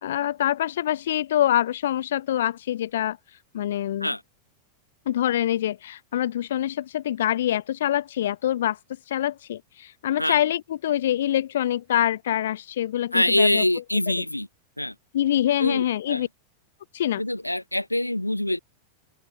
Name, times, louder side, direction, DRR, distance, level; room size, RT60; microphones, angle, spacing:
voice 1, 0.0-4.1 5.1-8.8 9.1-13.6 15.1-16.3 16.9-17.2, left 12 dB, 60° left, 0.4 m, -25 dB
voice 2, 13.1-14.5 14.8-14.9 15.6-16.3 17.2-18.6, left 1 dB, 85° left, 0.9 m, -24 dB
open air
figure-of-eight pair, 90°, 0 cm